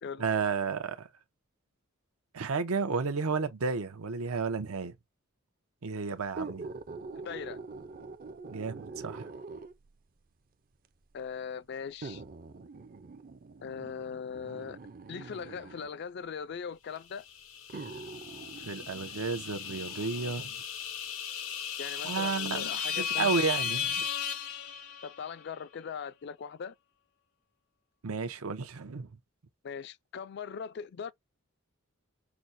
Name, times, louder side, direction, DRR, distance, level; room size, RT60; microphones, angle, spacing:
voice 1, 0.2-1.1 2.3-4.9 5.8-6.7 8.5-9.3 18.7-20.6 22.0-24.0 28.0-29.1, right 4 dB, 85° right, 0.7 m, -32 dB
sound 1, 6.3-9.9 10.8-10.9 12.0-15.9 17.0-17.1 17.7-20.4 20.8-20.9, right 3 dB, 40° right, 0.4 m, -44 dB
voice 2, 7.1-7.6 11.1-12.2 13.6-14.8 15.1-17.2 21.8-23.3 25.0-26.8 29.6-31.1, left 6 dB, 50° left, 0.3 m, -40 dB
sound 2, 17.3-25.3, left 8 dB, 70° left, 0.7 m, -35 dB
5.9 x 2.1 x 2.6 m
head